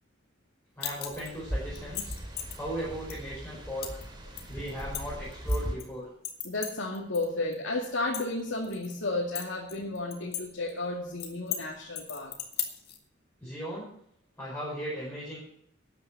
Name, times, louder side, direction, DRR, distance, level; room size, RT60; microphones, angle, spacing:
sound 1, 0.8-1.4 1.8-2.6 3.1-3.2 3.8-4.0 4.4-5.8 6.2-7.3 7.5-7.6 8.0-8.9 9.4-10.4 10.7-10.8 11.2-11.6 12.0-13.0, left 9 dB, 55° left, 2.1 m, -36 dB
voice 1, 0.8-2.1 2.5-3.9 4.5-6.1 13.4-13.9 14.4-15.4, equal, 10° left, -8 dB, 5.0 m, -37 dB
sound 2, 1.1-5.7, equal, 25° right, 3.0 m, -37 dB
voice 2, 6.4-12.3, left 2 dB, 90° left, -3 dB, 2.4 m, -33 dB
12.5 x 9.5 x 6.0 m, 0.72 s
head